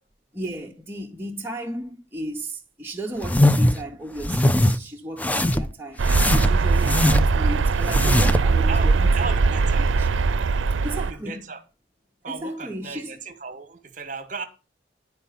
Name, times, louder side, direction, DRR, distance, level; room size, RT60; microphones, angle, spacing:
voice 1, 0.3-10.1 10.8-11.5 12.3-13.2, right 1 dB, 10° right, 0.9 m, -35 dB
sound 1, 3.2-3.8 4.2-4.8 5.2-5.7 6.1-7.4 7.8-8.5, left 1 dB, 10° left, 0.4 m, -20 dB
sound 2, 6.0-11.1, right 4 dB, 85° right, 0.5 m, -20 dB
voice 2, 8.7-9.9 10.9-11.6 12.2-14.5, right 4 dB, 40° right, 1.2 m, -35 dB
10.5 x 4.6 x 5.6 m
head